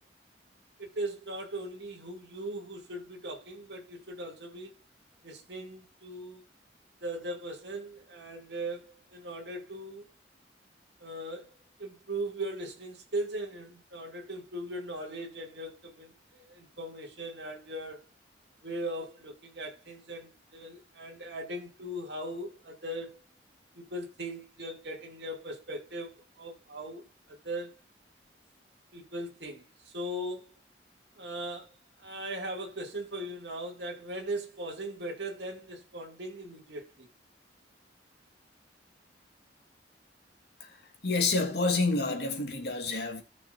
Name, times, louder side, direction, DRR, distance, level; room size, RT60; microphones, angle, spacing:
voice 1, 0.8-4.8 5.2-6.4 7.0-10.1 11.0-11.5 11.8-18.1 18.6-23.2 23.7-27.7 28.9-30.5 31.2-37.1, right 1 dB, 65° right, 2.4 m, -39 dB
voice 2, 40.6-43.2, left 3 dB, 60° left, 2.7 m, -29 dB
17.5 x 6.3 x 2.5 m
head